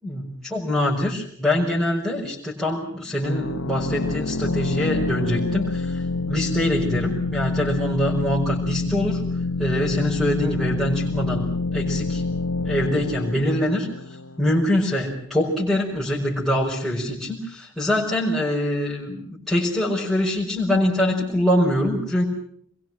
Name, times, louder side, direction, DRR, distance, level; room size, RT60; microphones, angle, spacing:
voice 1, 0.0-9.2 9.6-11.5 11.7-12.2 12.6-13.9 14.4-22.2, left 1 dB, ahead, -6 dB, 5.3 m, -24 dB
sound 1, 3.2-14.7, left 3 dB, 85° left, 1.3 m, -27 dB
27.5 x 22.5 x 6.2 m, 0.66 s
head